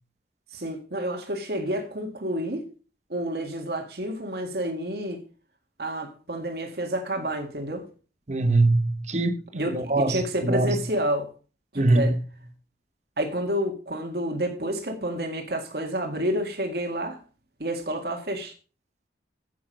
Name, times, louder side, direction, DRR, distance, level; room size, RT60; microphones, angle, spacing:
voice 1, 0.5-2.7 3.1-5.2 5.8-7.8 9.5-11.3 11.7-12.1 13.2-17.2 17.6-18.5, right 1 dB, 60° right, 1.9 m, -29 dB
voice 2, 8.3-9.4 9.7-10.8 11.7-12.2, right 2 dB, 40° right, 1.0 m, -22 dB
9.0 x 8.3 x 5.2 m
head